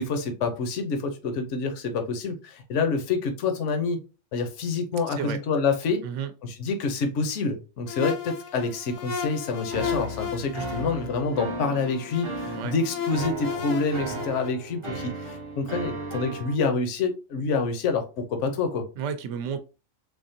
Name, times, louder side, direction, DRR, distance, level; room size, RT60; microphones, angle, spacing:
voice 1, 0.0-4.0 4.3-6.0 6.4-18.9, left 4 dB, 75° left, 1.0 m, -27 dB
sound 1, 7.9-14.5, left 7 dB, 45° left, 0.6 m, -34 dB
sound 2, 9.7-16.5, right 2 dB, 30° right, 0.6 m, -36 dB
voice 2, 19.0-19.6, right 7 dB, 75° right, 0.9 m, -32 dB
3.5 x 3.5 x 2.7 m
omnidirectional pair, 1.3 m